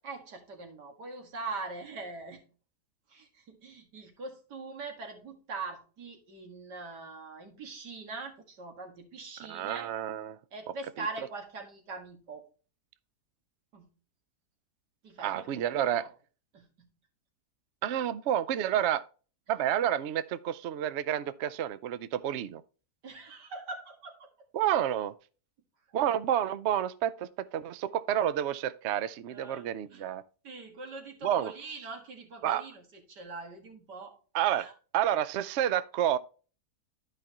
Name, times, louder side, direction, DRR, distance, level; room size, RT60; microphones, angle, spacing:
voice 1, 0.0-2.4 3.1-9.9 10.5-12.4 13.7-13.9 15.0-15.5 15.8-16.1 16.5-16.9 23.0-24.5 29.3-30.0 30.4-34.2 34.5-34.7, right 3 dB, 85° right, 2.4 m, -42 dB
voice 2, 9.5-10.4 15.2-16.1 17.8-19.0 19.5-22.6 24.5-25.1 25.9-30.2 31.2-31.5 32.4-32.6 34.3-36.2, right 10 dB, 70° right, 0.6 m, -29 dB
12.0 x 5.3 x 2.9 m
omnidirectional pair, 1.7 m